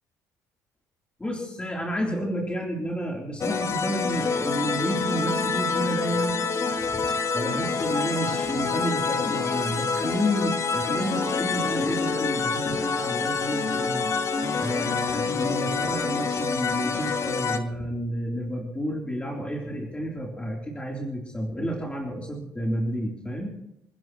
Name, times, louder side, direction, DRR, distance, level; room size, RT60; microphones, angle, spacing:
voice 1, 1.2-6.4 6.8-14.1 14.5-23.5, equal, 15° left, -1 dB, 3.5 m, -30 dB
sound 1, 3.4-17.6, left 5 dB, 40° left, 1.6 m, -27 dB
28.5 x 10.5 x 3.1 m, 0.85 s
supercardioid pair, 85°, 7 cm